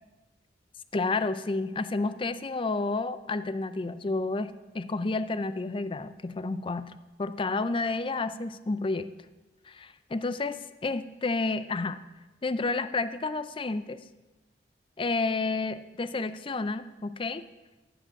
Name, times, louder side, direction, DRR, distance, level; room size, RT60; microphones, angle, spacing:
voice 1, 0.9-6.9 7.2-9.1 9.7-12.0 12.4-14.0 15.0-17.4, left 3 dB, 30° left, 13 dB, 0.4 m, -30 dB
14.5 x 5.1 x 6.3 m, 1.1 s
head